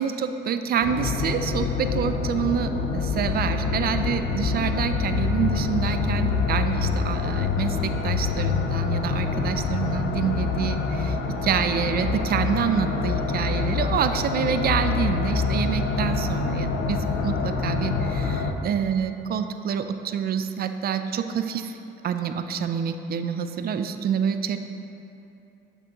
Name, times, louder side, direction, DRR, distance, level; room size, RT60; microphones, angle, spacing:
voice 1, 0.0-21.8 22.0-24.6, right 7 dB, 50° right, 9 dB, 0.4 m, -27 dB
sound 1, 0.8-18.5, left 4 dB, 75° left, 0.6 m, -26 dB
7.9 x 6.0 x 2.9 m, 2.9 s
cardioid pair, 90°, 20 cm